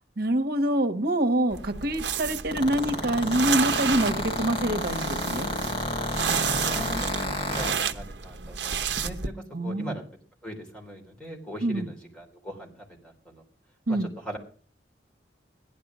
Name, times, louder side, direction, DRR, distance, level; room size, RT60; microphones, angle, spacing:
voice 1, 0.2-5.5 9.5-9.9 11.6-11.9 13.9-14.1, right 1 dB, 60° right, 7 dB, 1.3 m, -26 dB
sound 1, 1.5-9.3, right 7 dB, 75° right, 1.0 m, -31 dB
sound 2, 2.5-7.7, left 1 dB, 30° left, 4.7 m, -29 dB
voice 2, 6.3-10.0 10.4-13.4 13.9-14.4, equal, 5° left, 1 dB, 3.7 m, -40 dB
15.5 x 11.0 x 6.2 m, 0.42 s
head